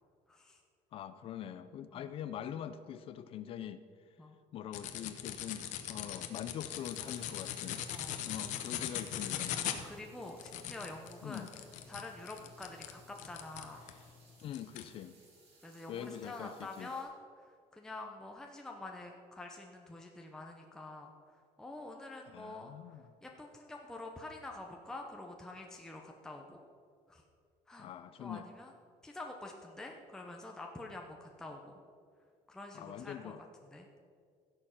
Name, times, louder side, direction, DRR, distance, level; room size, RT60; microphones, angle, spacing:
voice 1, 0.3-0.6 1.9-2.1 4.2-4.4 7.9-8.3 9.6-11.5 11.9-13.8 15.6-21.1 21.6-26.6 27.1-27.2 27.7-27.9 28.2-28.7 29.0-31.8 32.5-33.3 33.7-33.9, left 2 dB, 5° left, 1 dB, 0.7 m, -47 dB
voice 2, 0.9-3.8 4.5-7.9 8.2-9.6 11.2-11.5 14.4-15.2 15.9-16.9 22.3-23.0 27.8-28.5 32.7-33.4, left 10 dB, 45° left, 12 dB, 0.5 m, -43 dB
sound 1, 4.7-14.0 14.5-14.9, left 11 dB, 65° left, 1.0 m, -40 dB
sound 2, 6.8-17.0, right 3 dB, 45° right, 3.6 m, -65 dB
16.0 x 6.8 x 5.7 m, 2.3 s
cardioid pair, 160°, 14 cm